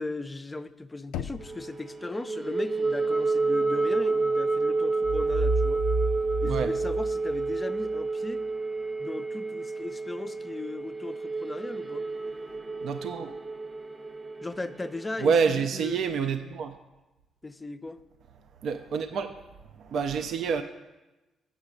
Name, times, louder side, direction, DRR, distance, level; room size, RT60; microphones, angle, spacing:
voice 1, 0.0-5.8 6.4-8.4 9.0-12.0 14.4-16.0 17.4-18.0, left 2 dB, 20° left, 12 dB, 0.4 m, -37 dB
Knock, 1.1-2.0, left 10 dB, 90° left, 0.3 m, -38 dB
sound 1, 1.4-15.1, right 3 dB, 25° right, 0.6 m, -30 dB
sound 2, 5.0-7.9, right 2 dB, 90° right, 1.6 m, -30 dB
voice 2, 12.8-13.3 15.2-16.7 18.6-19.3 19.8-20.6, right 6 dB, 70° right, 7 dB, 0.4 m, -27 dB
7.1 x 6.1 x 6.5 m, 1.1 s
cardioid pair, 90°, 0 cm